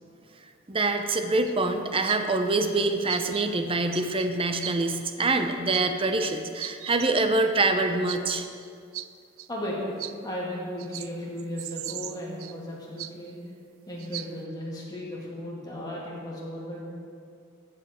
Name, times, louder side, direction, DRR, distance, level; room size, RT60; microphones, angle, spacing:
voice 1, 0.7-8.5, right 2 dB, 25° right, 7 dB, 0.7 m, -25 dB
sound 1, 1.2-1.7 2.1-2.2 2.5-2.7 3.1-3.5 3.8-4.3 4.6-4.7 5.7-5.9 6.2-7.1 7.6-7.7 8.1-8.2 8.6-8.7 8.9-9.1 9.4-9.5 10.0-10.1 10.8-11.1 11.4-12.6 13.0-13.3 14.0-14.3, right 14 dB, 90° right, 0.4 m, -38 dB
voice 2, 9.5-10.0 10.2-13.4 13.9-16.8, equal, 20° left, -5 dB, 2.3 m, -35 dB
14.0 x 7.7 x 4.4 m, 2.3 s
head